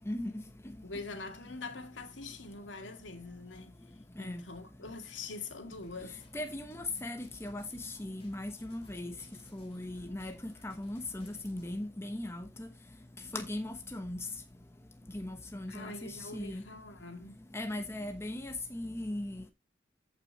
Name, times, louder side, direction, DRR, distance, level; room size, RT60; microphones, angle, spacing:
voice 1, 0.1-0.4 4.2-4.4 6.3-9.1 9.5-12.7 13.3-14.2 15.1-16.6 17.5-19.5, left 1 dB, 15° left, 1.0 m, -38 dB
voice 2, 0.8-3.8 4.2-6.2 15.7-17.5, left 3 dB, 85° left, 2.2 m, -44 dB
sound 1, 5.7-11.7, left 2 dB, 30° left, 3.0 m, -63 dB
14.5 x 5.8 x 3.0 m
head